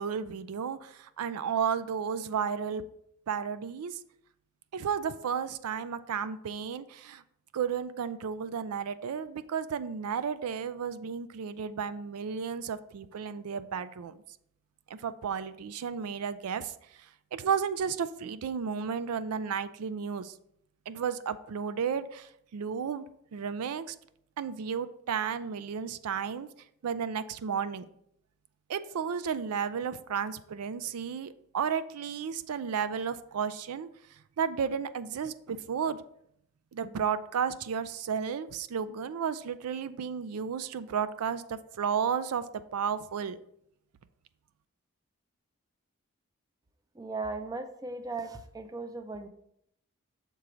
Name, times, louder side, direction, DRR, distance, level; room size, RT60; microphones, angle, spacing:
voice 1, 0.0-2.8 3.3-4.0 4.7-7.2 7.5-14.2 15.0-16.7 17.3-20.3 20.9-23.1 23.3-23.9 24.4-26.5 26.8-27.8 28.7-33.9 34.4-36.0 36.7-42.4 42.7-43.4, right 7 dB, 85° right, 14 dB, 0.4 m, -33 dB
voice 2, 46.9-49.3, right 3 dB, 15° right, 8 dB, 0.4 m, -37 dB
6.8 x 4.6 x 3.8 m, 0.72 s
head